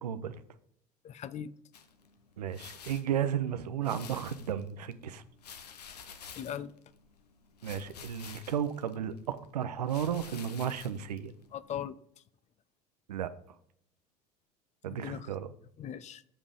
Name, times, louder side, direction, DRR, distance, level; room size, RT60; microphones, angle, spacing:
voice 1, 0.0-0.3 2.4-5.2 7.6-11.3 13.1-13.3 14.8-15.5, right 9 dB, 85° right, 12 dB, 0.6 m, -33 dB
voice 2, 1.0-1.5 6.4-6.7 11.5-12.0 14.9-15.3 15.8-16.2, left 9 dB, 35° left, 17 dB, 0.5 m, -39 dB
sound 1, 1.7-11.7, left 6 dB, 90° left, 0.7 m, -51 dB
7.4 x 5.4 x 4.9 m, 0.69 s
hypercardioid pair, 75°, 20 cm